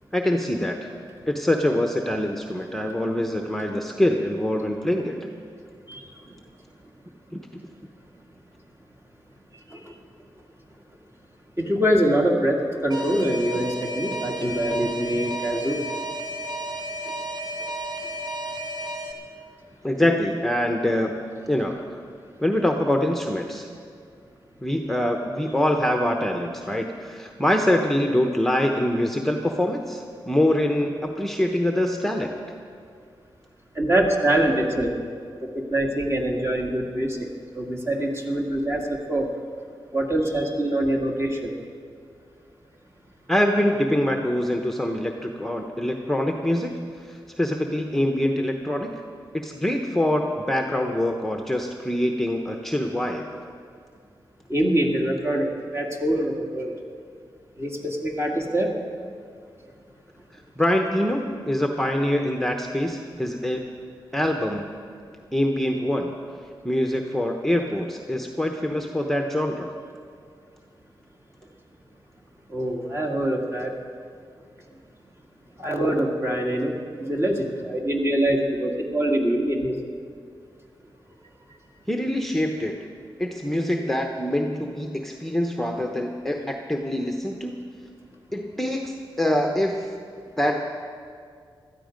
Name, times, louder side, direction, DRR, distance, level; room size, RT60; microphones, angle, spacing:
voice 1, 0.1-0.9 1.3-5.2 7.3-7.4 19.8-21.2 21.5-22.0 22.4-23.7 24.6-32.3 43.3-46.7 47.0-48.9 49.3-53.2 60.6-63.6 64.1-64.7 65.3-66.1 66.6-69.7 81.9-82.9 83.2-87.6 88.3-89.9 90.4-90.6, left 1 dB, 5° left, 3 dB, 0.9 m, -24 dB
voice 2, 11.6-15.8 17.1-17.2 33.8-34.9 35.4-37.3 37.6-39.3 39.9-41.5 54.5-56.7 57.6-58.7 72.5-73.7 75.6-79.7, right 1 dB, 30° right, 0 dB, 2.0 m, -24 dB
Alarm, 12.9-19.1, right 1 dB, 50° right, 1.5 m, -33 dB
17.0 x 13.0 x 5.2 m, 2.2 s
wide cardioid pair, 80°, 9 cm